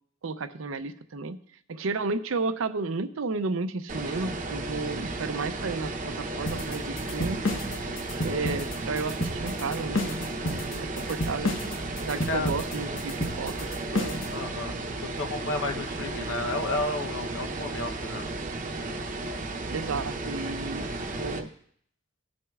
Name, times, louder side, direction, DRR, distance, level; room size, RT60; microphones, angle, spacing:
voice 1, 0.2-1.4 1.7-7.4 8.2-11.5 12.0-14.2 19.7-20.9 21.2-21.5, right 3 dB, 85° right, 11 dB, 0.6 m, -32 dB
sound 1, 3.9-21.4, right 2 dB, 40° right, 0.8 m, -34 dB
sound 2, 6.5-14.3, left 1 dB, 65° left, 1.1 m, -31 dB
voice 2, 7.9-8.3 12.3-12.5 14.3-18.3, left 2 dB, 90° left, 5 dB, 0.8 m, -32 dB
16.5 x 6.2 x 2.4 m, 0.65 s
head